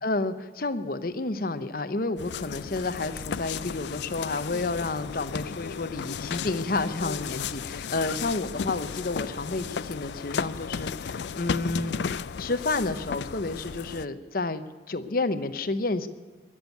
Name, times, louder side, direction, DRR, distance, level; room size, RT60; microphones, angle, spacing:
voice 1, 0.0-12.0 12.4-14.6 14.9-16.1, left 3 dB, 50° left, 11 dB, 0.8 m, -30 dB
sound 1, 2.2-14.0, left 6 dB, 65° left, 0.4 m, -34 dB
21.0 x 7.2 x 9.3 m, 1.4 s
head